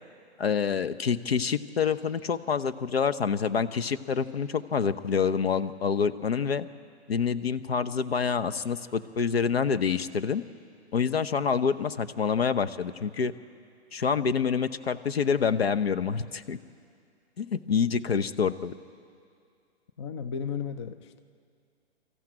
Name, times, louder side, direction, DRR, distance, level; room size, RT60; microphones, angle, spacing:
voice 1, 0.4-6.7 7.1-10.4 10.9-13.3 13.9-16.6 17.4-18.7, left 6 dB, 65° left, 12 dB, 0.9 m, -27 dB
voice 2, 20.0-21.2, left 7 dB, 25° left, 11 dB, 0.5 m, -34 dB
24.0 x 14.0 x 8.8 m, 2.3 s
figure-of-eight pair, 125°, 33 cm